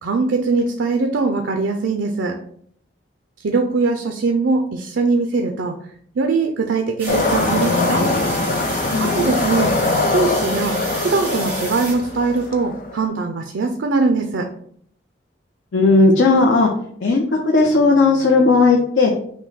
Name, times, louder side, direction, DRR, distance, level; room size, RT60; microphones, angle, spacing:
voice 1, 0.0-2.4 3.4-5.8 6.2-8.1 9.0-14.5, right 4 dB, 90° right, 4 dB, 0.5 m, -21 dB
sound 1, 7.0-12.5, right 2 dB, 10° right, 1.3 m, -31 dB
sound 2, 7.1-13.0, left 2 dB, 50° left, 0.6 m, -22 dB
voice 2, 8.9-9.3 15.7-16.7 17.0-19.1, left 3 dB, 85° left, -1 dB, 0.7 m, -15 dB
6.0 x 2.2 x 4.0 m, 0.63 s
head